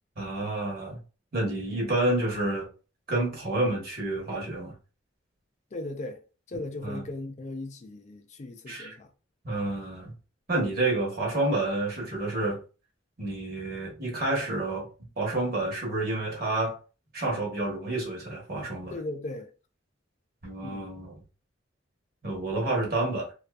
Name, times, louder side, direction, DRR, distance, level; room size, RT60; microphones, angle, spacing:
voice 1, 0.2-1.0 1.3-2.7 3.1-4.7 6.5-7.0 8.7-9.0 9.4-10.1 10.5-12.6 13.2-14.9 15.2-16.8 17.1-18.9 20.4-21.2 22.2-23.3, right 2 dB, 50° right, 1.0 m, -29 dB
voice 2, 5.7-6.2 6.5-9.1 18.9-19.5 20.6-20.9, left 2 dB, 40° left, 0.4 m, -37 dB
2.6 x 2.4 x 2.2 m
head